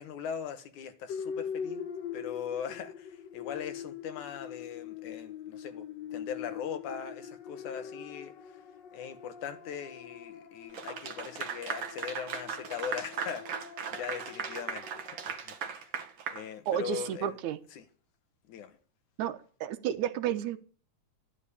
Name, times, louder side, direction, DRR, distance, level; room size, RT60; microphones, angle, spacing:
voice 1, 0.0-1.8 2.1-8.3 8.9-15.9 16.3-17.4 17.7-17.9 18.5-18.8, left 8 dB, 90° left, 2.9 m, -40 dB
sound 1, 1.1-15.3, left 7 dB, 60° left, 1.2 m, -43 dB
Clapping / Applause, 10.7-17.1, right 6 dB, 55° right, 1.6 m, -38 dB
voice 2, 16.7-17.6 19.2-20.6, right 10 dB, 85° right, 2.4 m, -32 dB
13.0 x 11.0 x 8.5 m
omnidirectional pair, 3.3 m